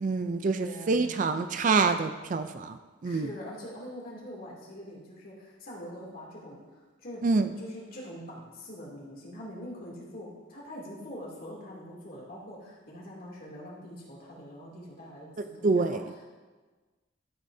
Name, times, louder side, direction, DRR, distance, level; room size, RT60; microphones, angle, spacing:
voice 1, 0.0-3.3 7.2-7.5 15.6-16.0, right 4 dB, 40° right, 9 dB, 0.4 m, -26 dB
voice 2, 0.6-1.4 3.0-7.2 7.6-16.3, equal, 45° left, -4 dB, 2.7 m, -44 dB
13.5 x 8.3 x 2.7 m, 1.3 s
head